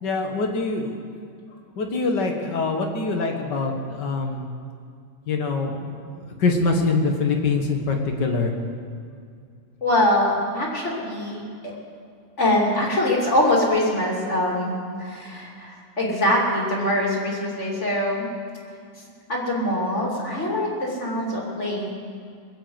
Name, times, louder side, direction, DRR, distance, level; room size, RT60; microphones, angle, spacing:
voice 1, 0.0-1.0 1.8-4.5 5.3-8.5, left 3 dB, 85° left, 3 dB, 2.2 m, -24 dB
voice 2, 9.8-11.7 12.4-18.3 19.3-21.9, left 1 dB, 40° left, -2 dB, 3.0 m, -23 dB
22.0 x 7.8 x 7.8 m, 2.3 s
omnidirectional pair, 1.8 m